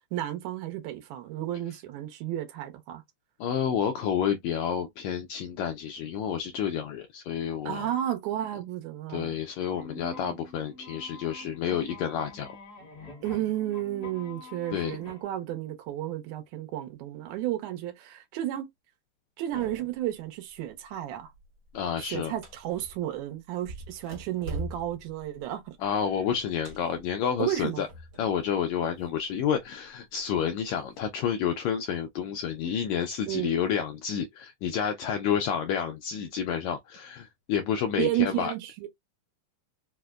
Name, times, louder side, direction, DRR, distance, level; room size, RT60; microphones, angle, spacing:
voice 1, 0.1-3.0 7.7-9.3 10.3-10.4 13.2-18.7 19.4-21.3 22.0-25.7 27.4-27.8 33.3-33.5 38.0-38.9, right 13 dB, 75° right, 2.2 m, -32 dB
voice 2, 3.4-7.9 9.1-12.6 14.7-15.0 21.7-22.3 25.8-27.9 28.2-38.5, left 8 dB, 80° left, 1.6 m, -29 dB
sound 1, 9.6-15.2, left 2 dB, 60° left, 0.9 m, -47 dB
sound 2, 19.5-20.1 20.5-20.9 21.3-23.1 23.6-28.3 28.6-29.6 30.2-31.0, right 2 dB, 55° right, 1.2 m, -43 dB
5.0 x 2.0 x 2.3 m
omnidirectional pair, 3.7 m